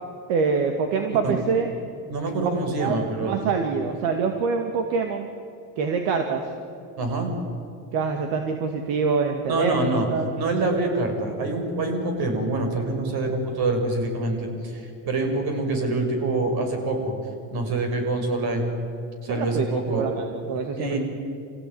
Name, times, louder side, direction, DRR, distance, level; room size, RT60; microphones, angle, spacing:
voice 1, 0.3-1.7 2.4-5.3 5.8-6.5 7.9-9.8 10.1-10.3 19.3-21.0, right 5 dB, 75° right, 4 dB, 2.4 m, -25 dB
voice 2, 2.1-3.3 7.0-7.3 9.5-10.1 10.4-17.2 17.5-18.7 19.2-20.0 20.6-21.0, right 2 dB, 50° right, 4 dB, 6.6 m, -26 dB
26.5 x 17.0 x 9.7 m, 2.5 s
supercardioid pair, 115°, 46 cm